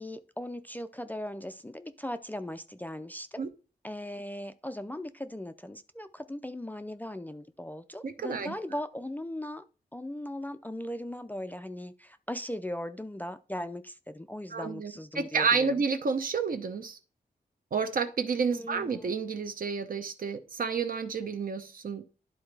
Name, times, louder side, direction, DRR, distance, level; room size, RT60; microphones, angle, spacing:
voice 1, 0.0-3.4 3.8-9.7 9.9-15.8 18.5-19.1, left 1 dB, 10° left, 10 dB, 0.3 m, -38 dB
voice 2, 8.0-8.5 14.5-17.0 17.7-22.0, right 5 dB, 60° right, 9 dB, 0.8 m, -30 dB
11.5 x 4.0 x 3.3 m, 0.35 s
wide cardioid pair, 165°, 16 cm